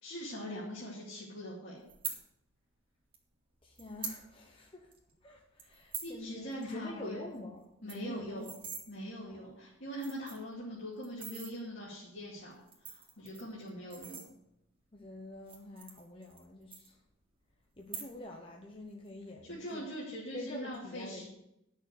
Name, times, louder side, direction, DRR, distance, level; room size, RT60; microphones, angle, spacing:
voice 1, 0.0-1.8 6.0-7.3 7.8-8.5 8.9-14.2 19.5-21.3, equal, 55° left, -8 dB, 2.5 m, -42 dB
sound 1, 1.9-2.2 3.1-3.2 3.8-4.2 4.6-4.7 4.9-5.1 5.6-6.1 6.5-6.6 6.9-7.0 7.3-7.4 7.7-8.8 9.5-9.6 9.9-10.5 11.0-11.5 12.5-14.7 15.4-16.4 16.7-17.3 17.8-18.4 18.7-19.1, right 6 dB, 25° right, 1.6 m, -43 dB
voice 2, 3.6-4.9 5.2-8.5 9.2-9.4 14.9-17.0 17.8-19.9 20.3-21.3, left 2 dB, 25° left, 1 dB, 0.9 m, -46 dB
10.0 x 6.6 x 6.6 m, 0.84 s
head